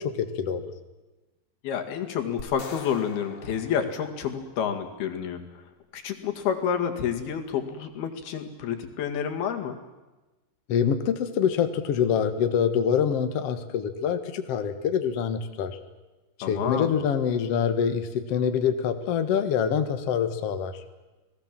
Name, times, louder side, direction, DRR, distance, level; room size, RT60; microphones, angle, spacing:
voice 1, 0.2-0.6 10.7-15.8 16.4-20.7, left 7 dB, 90° left, 8 dB, 1.3 m, -25 dB
voice 2, 1.6-5.5 5.9-9.8 16.4-16.9, left 8 dB, 60° left, 6 dB, 3.6 m, -29 dB
sound 1, 2.4-4.8, left 5 dB, 45° left, 3.4 m, -44 dB
29.5 x 19.5 x 7.6 m, 1.1 s
omnidirectional pair, 5.3 m